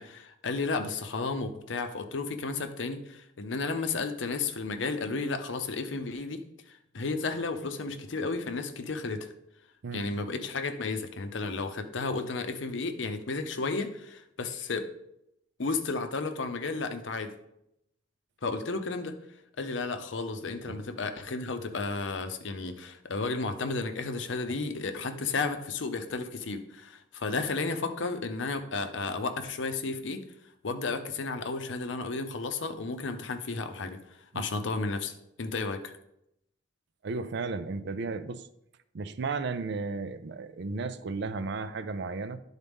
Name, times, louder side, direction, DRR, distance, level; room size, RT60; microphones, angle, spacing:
voice 1, 0.0-9.3 9.9-14.9 15.6-17.3 18.4-19.2 19.6-30.2 30.6-34.0 34.3-35.1 35.4-35.9, left 3 dB, 70° left, 8 dB, 0.7 m, -33 dB
voice 2, 37.0-38.5 38.9-42.4, right 4 dB, 65° right, 12 dB, 0.5 m, -34 dB
11.0 x 4.0 x 3.5 m, 0.81 s
head